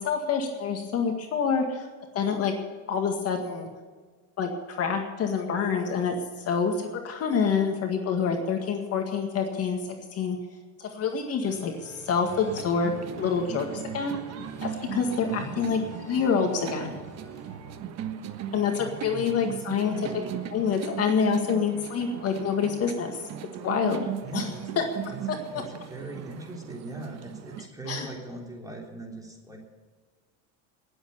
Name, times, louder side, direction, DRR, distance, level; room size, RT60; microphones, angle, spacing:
voice 1, 0.0-1.9 2.1-2.5 2.9-3.7 4.4-9.8 10.1-10.4 10.8-14.2 14.6-15.8 16.1-17.0 18.5-20.1 20.5-23.2 23.6-24.1 24.3-24.5 24.8-24.9 27.9-28.1, left 6 dB, 40° left, 3 dB, 2.0 m, -27 dB
sound 1, 11.4-18.4, right 1 dB, 10° left, 4.2 m, -48 dB
sound 2, 12.2-27.7, right 9 dB, 45° right, 1.2 m, -38 dB
voice 2, 15.2-15.6 18.7-19.6 19.9-20.2 24.2-24.6 25.1-25.2 25.5-29.6, right 3 dB, 10° right, 0 dB, 3.4 m, -40 dB
19.0 x 8.1 x 7.0 m, 1.5 s
supercardioid pair, 125°, 37 cm